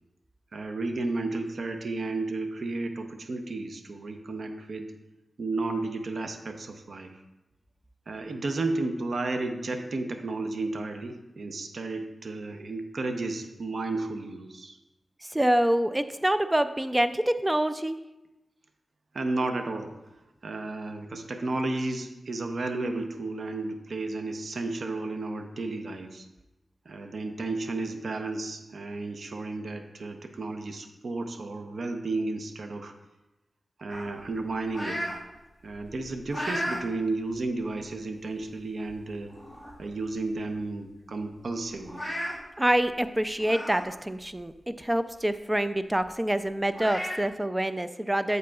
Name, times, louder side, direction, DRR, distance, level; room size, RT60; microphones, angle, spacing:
voice 1, 0.5-4.9 5.4-7.1 8.1-14.8 19.1-20.0 20.4-26.3 26.9-32.9 33.8-35.0 35.6-39.3 39.8-42.0, right 2 dB, 70° right, 6 dB, 0.7 m, -33 dB
voice 2, 15.3-18.0 42.6-48.4, right 1 dB, 15° right, 11 dB, 0.3 m, -26 dB
sound 1, 33.9-35.2 35.6-36.8 37.3-37.4 38.3-38.4 38.8-39.0 39.3-39.9 40.2-40.3 40.6-40.7 41.8-42.3 43.4-43.8 44.3-44.4 46.0-46.1 46.7-47.2, equal, ahead, 2.5 m, -34 dB
7.8 x 7.6 x 2.3 m, 0.99 s
wide cardioid pair, 85°, 0 cm